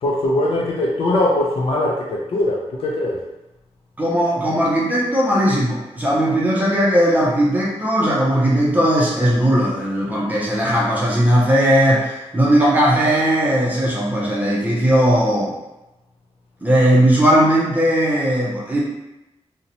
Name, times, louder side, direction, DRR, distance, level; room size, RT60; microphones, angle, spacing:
voice 1, 0.0-3.2, left 1 dB, 60° left, -3 dB, 0.4 m, -21 dB
voice 2, 4.0-15.5 16.6-18.8, equal, 15° right, -6 dB, 0.5 m, -17 dB
2.7 x 2.0 x 2.6 m, 0.97 s
wide cardioid pair, 150°, 11 cm